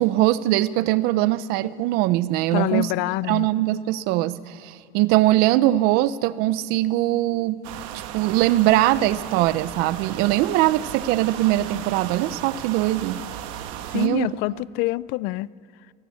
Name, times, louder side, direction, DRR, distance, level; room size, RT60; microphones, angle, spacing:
voice 1, 0.0-2.9 3.3-7.6 7.9-13.2 13.9-14.4, right 15 dB, 65° right, 0.7 m, -21 dB
voice 2, 2.5-3.5 13.9-15.5, left 20 dB, 65° left, 0.4 m, -26 dB
sound 1, 7.6-14.1, right 10 dB, 85° right, 1.4 m, -35 dB
21.5 x 14.5 x 8.5 m
cardioid pair, 150°, 17 cm